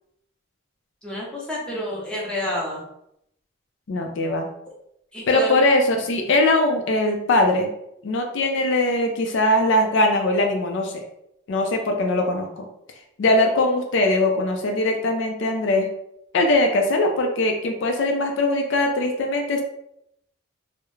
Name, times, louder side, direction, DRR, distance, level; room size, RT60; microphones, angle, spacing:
voice 1, 1.0-2.9 5.1-5.6, equal, 5° left, -5 dB, 0.5 m, -29 dB
voice 2, 3.9-4.5 5.3-7.7 8.0-11.0 11.5-12.7 13.2-15.9 16.3-19.6, left 2 dB, 65° left, 3 dB, 0.4 m, -21 dB
2.3 x 2.0 x 3.0 m, 0.77 s
head